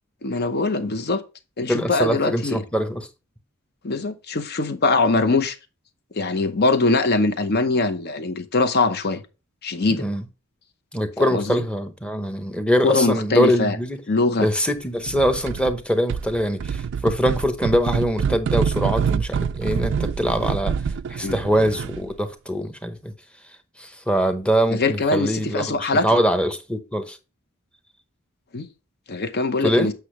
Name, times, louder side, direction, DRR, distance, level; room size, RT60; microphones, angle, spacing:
voice 1, 0.2-1.2 1.6-2.6 3.8-5.6 6.1-9.2 9.6-10.0 11.2-11.6 12.8-13.8 14.1-14.5 21.2-21.4 24.7-26.1 28.5-28.7 29.1-29.9, left 3 dB, 50° left, 0.8 m, -22 dB
voice 2, 1.7-3.1 9.9-10.2 10.9-14.0 14.4-20.7 21.1-23.1 23.8-27.2 29.6-29.9, equal, 5° left, 0.8 m, -23 dB
sound 1, 15.1-15.8 16.1-22.1, right 6 dB, 60° right, 0.4 m, -26 dB
8.2 x 5.9 x 3.1 m
head